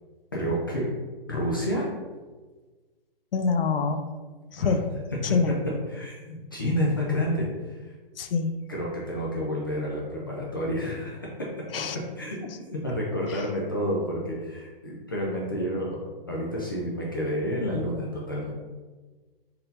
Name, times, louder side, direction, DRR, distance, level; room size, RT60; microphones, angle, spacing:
voice 1, 0.3-0.9 1.3-1.8 4.6-4.8 5.9-7.9 8.7-11.3 12.2-18.5, equal, 25° left, -4 dB, 0.4 m, -29 dB
voice 2, 3.3-4.0 4.5-4.9 5.2-5.5 8.2-8.5 11.7-12.0 12.4-12.5 13.3-13.4, left 5 dB, 70° left, 8 dB, 0.6 m, -25 dB
4.1 x 2.7 x 3.9 m, 1.3 s
hypercardioid pair, 170°, 30 cm